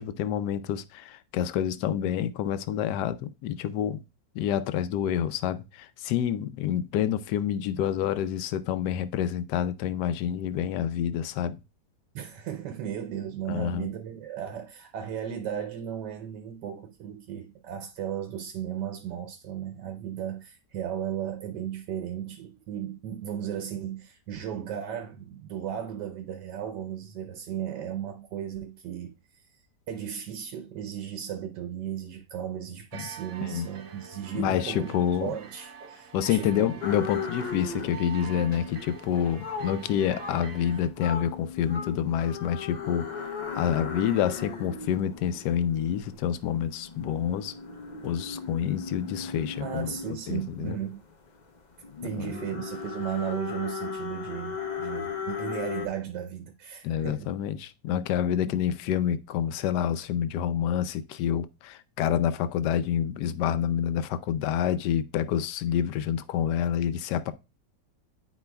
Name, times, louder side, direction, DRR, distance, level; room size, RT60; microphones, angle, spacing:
voice 1, 0.0-4.0 4.3-11.6 13.5-13.9 32.9-33.1 33.4-33.7 34.3-35.3 36.1-43.1 43.5-47.5 48.0-49.9 50.3-50.8 52.2-52.5 56.8-67.3, left 9 dB, 80° left, 1.2 m, -28 dB
voice 2, 12.1-29.6 29.9-36.8 39.7-39.8 49.6-51.0 52.0-57.3 58.5-58.6, right 9 dB, 85° right, 1.3 m, -35 dB
sound 1, 32.9-40.9, right 7 dB, 60° right, 1.0 m, -46 dB
sound 2, 36.8-55.9, left 6 dB, 60° left, 0.4 m, -37 dB
10.5 x 4.6 x 2.2 m
omnidirectional pair, 1.8 m